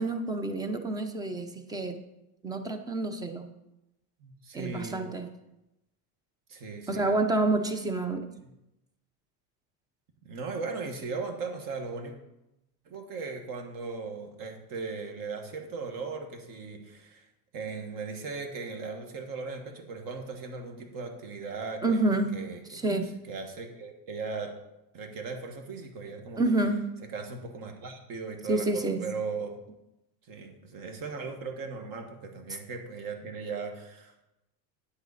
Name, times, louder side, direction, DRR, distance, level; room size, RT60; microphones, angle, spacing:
voice 1, 0.0-2.0 2.4-3.5 4.5-5.3 6.9-8.3 21.8-22.3 22.7-23.1 26.4-26.9 28.5-29.1, right 2 dB, 10° right, 7 dB, 0.6 m, -28 dB
voice 2, 4.2-5.1 6.5-7.1 8.4-8.5 10.2-12.1 12.9-17.3 17.5-22.8 23.3-24.5 24.9-26.4 27.1-29.6 30.3-34.2, right 4 dB, 45° right, 5 dB, 1.6 m, -38 dB
10.0 x 7.9 x 4.1 m, 0.92 s
cardioid pair, 150°, 47 cm